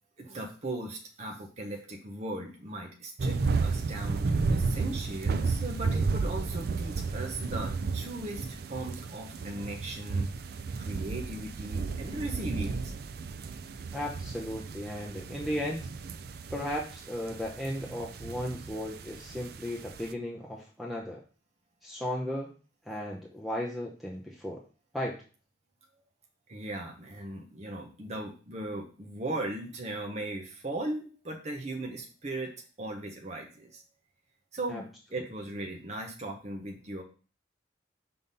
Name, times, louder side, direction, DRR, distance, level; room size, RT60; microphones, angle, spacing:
voice 1, 0.2-10.3 10.7-12.9 26.5-32.5 32.8-33.8 34.5-37.0, right 1 dB, 35° right, 1 dB, 0.9 m, -38 dB
sound 1, 3.2-20.1, right 4 dB, 55° right, 0.4 m, -33 dB
voice 2, 13.9-15.9 16.5-21.2 21.8-22.5 22.9-24.6 24.9-25.2 34.7-34.8, equal, ahead, -1 dB, 0.7 m, -35 dB
5.6 x 3.9 x 5.4 m, 0.38 s
head